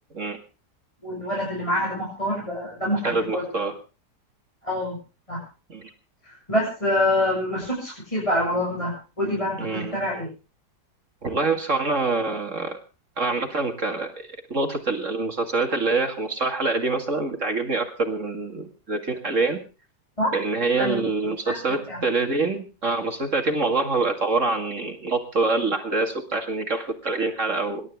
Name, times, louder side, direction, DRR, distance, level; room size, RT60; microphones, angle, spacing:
voice 1, 1.0-3.6 4.6-5.0 5.3-5.4 6.2-10.3 20.2-20.3 20.8-21.0 21.4-21.6 21.9-22.0, left 1 dB, 20° left, -4 dB, 7.7 m, -26 dB
voice 2, 3.0-3.7 5.7-5.8 9.6-10.0 11.2-12.8 13.2-19.6 20.3-27.8, right 3 dB, 45° right, 5 dB, 2.4 m, -25 dB
26.5 x 12.5 x 3.5 m, 0.34 s
omnidirectional pair, 1.8 m